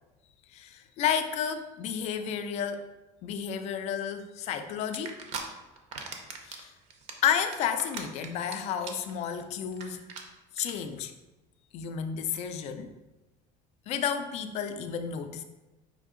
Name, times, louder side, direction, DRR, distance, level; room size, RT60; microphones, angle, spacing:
voice 1, 0.5-2.8 3.2-5.2 6.4-6.7 7.2-10.0 10.5-11.1 11.7-12.9 13.9-15.4, left 8 dB, 45° left, 8 dB, 0.4 m, -31 dB
sound 1, 4.9-5.4 5.8-6.6 6.9-8.5 8.8-9.1 9.4-9.5 9.7-9.8 10.1-10.2 10.6-10.7, right 6 dB, 45° right, 0.6 m, -38 dB
5.0 x 2.7 x 3.7 m, 1.1 s
cardioid pair, 165°, 16 cm